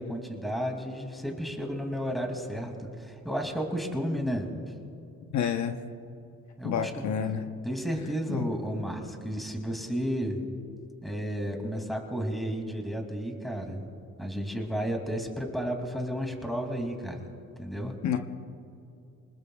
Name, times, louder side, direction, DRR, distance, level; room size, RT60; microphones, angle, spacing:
voice 1, 0.0-4.5 6.6-7.1 7.6-10.4 11.0-13.9 14.2-17.3 17.6-18.0, equal, ahead, 2 dB, 2.5 m, -32 dB
voice 2, 5.3-5.8 6.6-7.4 8.3-8.5 18.0-18.3, left 8 dB, 70° left, 6 dB, 1.0 m, -29 dB
25.5 x 20.0 x 2.4 m, 2.6 s
cardioid pair, 90°, 30 cm